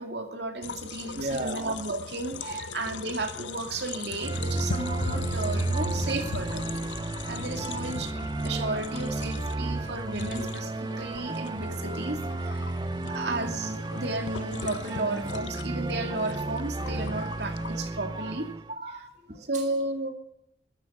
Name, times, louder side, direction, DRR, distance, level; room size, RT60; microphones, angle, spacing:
voice 1, 0.0-6.7 7.3-18.5 19.5-20.1, right 2 dB, 70° right, 5 dB, 2.5 m, -33 dB
sound 1, 0.6-17.8, left 5 dB, 85° left, 0.5 m, -40 dB
voice 2, 1.1-1.6 2.4-2.6 17.1-17.3 18.1-18.3 18.7-19.5, right 2 dB, 40° right, 3 dB, 1.6 m, -35 dB
sound 2, 4.2-18.7, right 2 dB, 25° right, 0.5 m, -32 dB
sound 3, 5.3-10.4, equal, 15° left, 2.4 m, -46 dB
13.5 x 11.5 x 7.9 m, 0.74 s
head